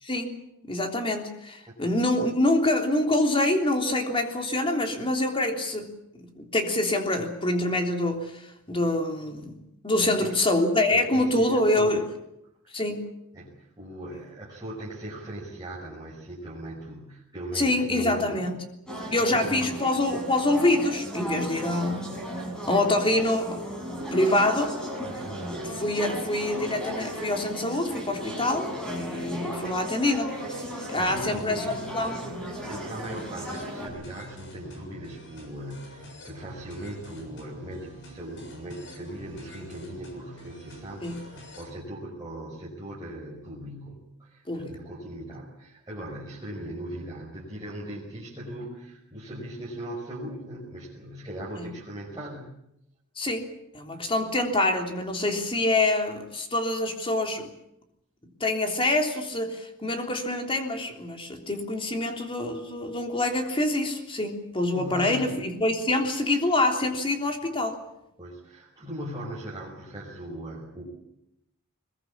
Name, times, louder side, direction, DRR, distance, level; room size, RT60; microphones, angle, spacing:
voice 1, 0.0-9.6 9.8-12.0 12.7-13.0 17.5-18.6 19.1-22.2 22.7-24.8 25.2-25.3 25.6-31.6 31.9-32.2 41.0-41.2 44.5-44.7 51.5-51.7 53.1-57.5 58.4-67.8, left 2 dB, 25° left, 4 dB, 3.4 m, -26 dB
voice 2, 10.0-10.3 10.9-12.0 13.3-18.5 19.3-19.7 30.7-31.7 32.7-52.6 64.7-65.5 68.2-70.9, right 1 dB, 20° right, -6 dB, 5.3 m, -39 dB
sound 1, 18.9-33.9, equal, 5° left, 6.4 m, -35 dB
sound 2, 31.0-41.7, equal, 60° left, 7.0 m, -46 dB
22.0 x 21.5 x 8.5 m, 0.81 s
head